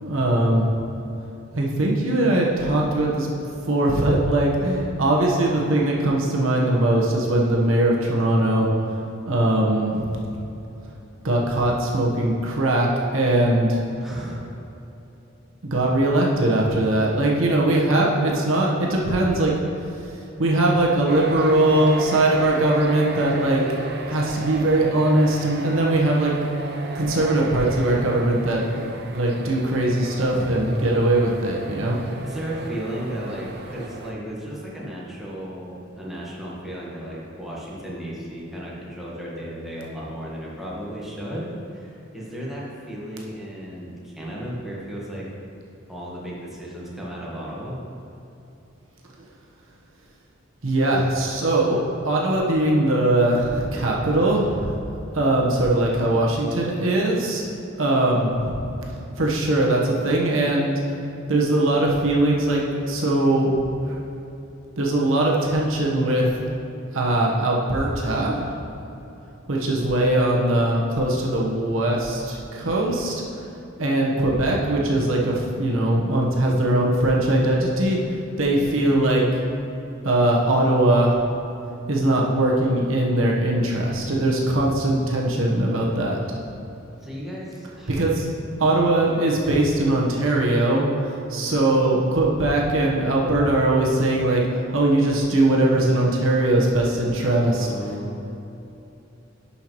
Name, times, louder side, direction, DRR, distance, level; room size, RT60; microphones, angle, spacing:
voice 1, 0.0-0.7 1.5-8.7 9.2-10.2 11.2-13.8 15.7-19.5 20.4-23.6 24.1-26.3 26.9-32.0 50.6-54.7 55.1-57.4 57.8-58.6 59.2-60.7 61.3-63.5 63.9-64.0 64.8-66.3 66.9-68.5 69.5-73.2 73.8-78.0 78.4-79.2 80.0-81.2 81.9-86.2 87.9-88.3 88.6-90.8 91.3-94.4 94.7-97.7, right 1 dB, 80° right, -2 dB, 1.2 m, -21 dB
voice 2, 14.0-14.4 32.2-45.3 45.9-47.8 78.7-78.9 87.0-88.0 97.4-98.2, equal, ahead, -6 dB, 1.3 m, -34 dB
sound 1, 21.1-34.1, right 2 dB, 55° right, 0.6 m, -35 dB
11.0 x 5.7 x 3.1 m, 3.0 s
head